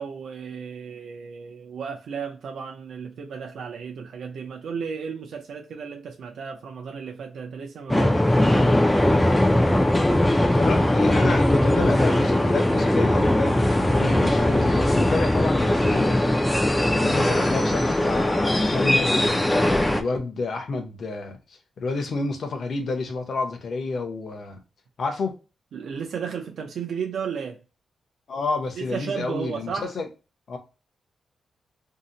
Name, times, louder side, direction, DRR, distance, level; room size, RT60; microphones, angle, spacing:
voice 1, 0.0-8.8 25.7-27.6 28.8-29.9, right 6 dB, 70° right, 0.5 m, -34 dB
sound 1, 7.9-20.0, left 1 dB, 5° left, 0.3 m, -20 dB
voice 2, 10.5-16.4 16.9-21.4 21.8-24.6 25.0-25.4 28.3-30.0 30.5-30.6, left 3 dB, 45° left, 0.6 m, -29 dB
2.7 x 2.1 x 3.7 m
wide cardioid pair, 170°, 0 cm